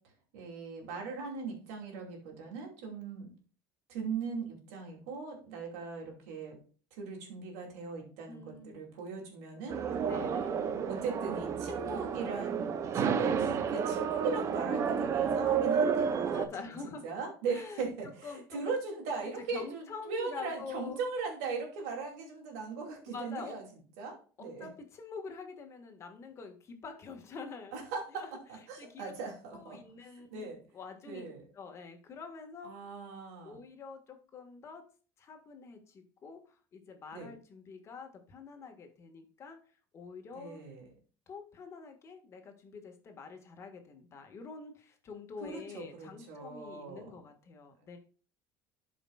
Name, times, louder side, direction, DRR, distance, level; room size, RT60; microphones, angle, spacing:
voice 1, 0.3-3.3 3.9-6.6 7.0-12.6 12.9-23.7 24.0-24.7 27.7-28.2 28.7-29.8 30.3-30.6 31.0-31.4 32.6-33.6 37.1-37.3 40.3-40.9 45.4-47.2, right 4 dB, 90° right, 1 dB, 2.7 m, -39 dB
voice 2, 8.3-8.8 10.0-10.6 16.3-17.0 17.5-17.9 18.2-18.7 19.4-21.0 23.1-23.6 24.4-27.9 28.1-29.1 29.5-31.2 31.5-32.7 33.4-34.8 35.2-39.6 39.9-40.6 41.3-48.0, left 5 dB, 35° left, 4 dB, 1.6 m, -46 dB
sound 1, 9.7-16.5, right 7 dB, 40° right, 0.7 m, -31 dB
12.0 x 5.1 x 2.4 m, 0.40 s
cardioid pair, 120°, 8 cm